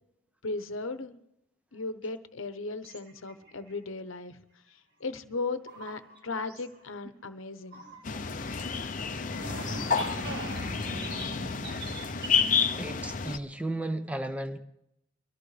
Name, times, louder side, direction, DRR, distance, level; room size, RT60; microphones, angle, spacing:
voice 1, 0.4-1.2 1.7-4.4 4.7-7.8, left 3 dB, 75° left, 10 dB, 0.9 m, -36 dB
sound 1, 2.8-3.7 5.7-6.2 6.5-6.8 7.7-8.5 8.8-8.9 9.2-12.3, right 1 dB, 50° right, 2.0 m, -40 dB
sound 2, 8.1-13.4, left 6 dB, 40° left, 0.7 m, -30 dB
voice 2, 12.7-14.6, right 1 dB, 5° right, 8 dB, 0.8 m, -34 dB
23.0 x 14.0 x 3.3 m, 0.79 s
head